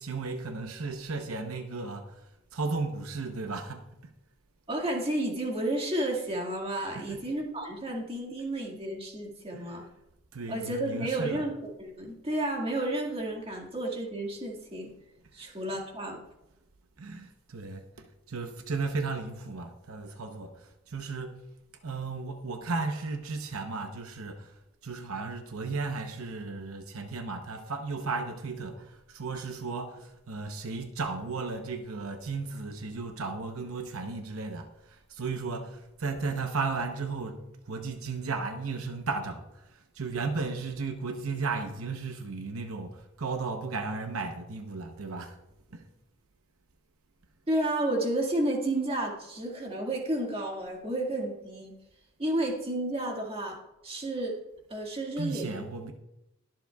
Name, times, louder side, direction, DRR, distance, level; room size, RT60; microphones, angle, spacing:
voice 1, 0.0-3.9 6.9-7.2 9.5-9.8 10.3-11.4 15.4-15.6 17.0-21.4 21.8-24.5 24.8-37.4 37.7-45.4 45.7-45.9 55.2-55.9, right 4 dB, 75° right, 5 dB, 0.8 m, -35 dB
voice 2, 4.7-9.9 10.5-11.5 11.8-14.9 15.3-16.2 47.5-51.7 52.2-53.6 53.8-54.4 54.7-55.6, right 1 dB, 25° right, 0 dB, 1.9 m, -31 dB
22.0 x 7.6 x 2.3 m, 0.91 s
head